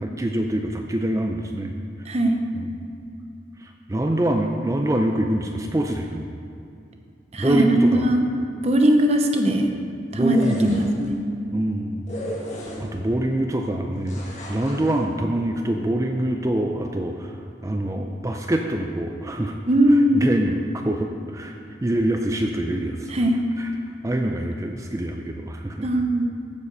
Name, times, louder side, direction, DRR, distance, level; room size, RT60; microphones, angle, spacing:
voice 1, 0.0-1.7 2.5-2.8 3.6-6.2 7.4-8.1 10.1-10.8 11.5-12.1 12.8-17.3 17.6-19.6 19.9-21.5 21.8-23.1 23.6-23.7 24.0-25.9, right 1 dB, 15° right, 3 dB, 0.5 m, -25 dB
voice 2, 2.1-2.4 7.3-8.2 8.6-9.7 10.1-11.1 19.7-20.2 23.1-23.4 25.8-26.3, right 1 dB, 35° right, 3 dB, 0.9 m, -19 dB
sound 1, 10.1-11.1 12.1-13.1 14.0-15.0, equal, 40° left, 1.6 m, -35 dB
15.0 x 5.2 x 5.4 m, 2.5 s
head